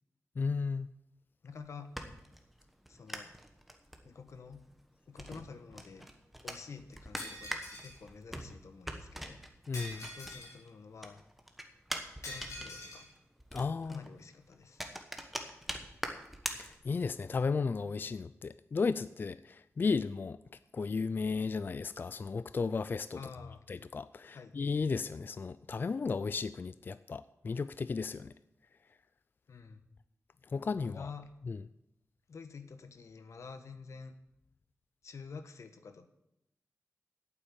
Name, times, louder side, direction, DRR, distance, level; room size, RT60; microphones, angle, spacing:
voice 1, 0.4-0.9 9.7-10.1 13.5-14.0 16.6-20.4 20.7-23.2 23.7-28.3 30.5-31.1 31.4-31.6, left 4 dB, 40° left, 15 dB, 0.3 m, -34 dB
voice 2, 1.4-1.9 2.9-3.3 4.0-4.6 5.1-6.1 6.4-9.4 10.1-11.2 12.2-13.1 13.8-14.8 23.1-23.6 24.3-24.5 29.5-29.8 30.7-31.3 32.3-34.1 35.0-36.1, left 5 dB, 70° left, 9 dB, 1.1 m, -49 dB
sound 1, 1.5-10.7 11.0-17.2, equal, ahead, 1.2 m, -44 dB
Shatter, 7.2-8.0 9.7-10.6 12.2-13.0, left 1 dB, 90° left, 3.8 m, -45 dB
8.9 x 8.4 x 9.0 m, 0.84 s
wide cardioid pair, 135°, 5 cm